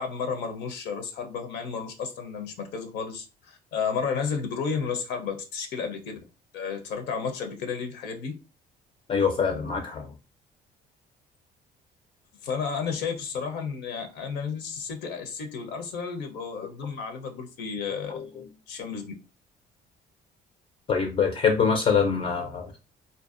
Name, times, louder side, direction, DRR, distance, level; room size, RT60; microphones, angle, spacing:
voice 1, 0.0-6.1 6.5-8.3 12.4-18.2 18.7-19.1, left 6 dB, 85° left, 0.6 m, -32 dB
voice 2, 9.1-10.1 18.1-18.4 20.9-22.7, left 6 dB, 35° left, 0.4 m, -24 dB
2.5 x 2.1 x 2.4 m
cardioid pair, 110°, 17 cm